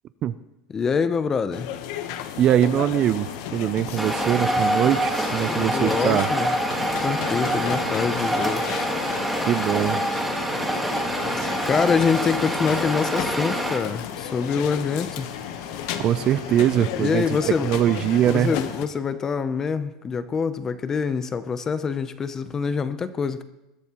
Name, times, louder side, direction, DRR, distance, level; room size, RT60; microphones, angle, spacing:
voice 1, 0.7-1.7 5.5-6.5 6.8-8.8 11.3-15.3 17.0-17.7 18.2-23.4, left 6 dB, 15° left, 12 dB, 0.6 m, -25 dB
sound 1, 1.5-18.9, left 10 dB, 55° left, 1.0 m, -35 dB
voice 2, 2.4-6.3 9.5-10.0 16.0-18.5, right 11 dB, 30° right, 14 dB, 0.4 m, -22 dB
sound 2, 2.7-18.5, left 6 dB, 80° left, 2.4 m, -40 dB
sound 3, 4.0-13.8, right 1 dB, ahead, 1.5 m, -26 dB
21.0 x 13.5 x 2.9 m, 0.93 s
supercardioid pair, 170°, 3 cm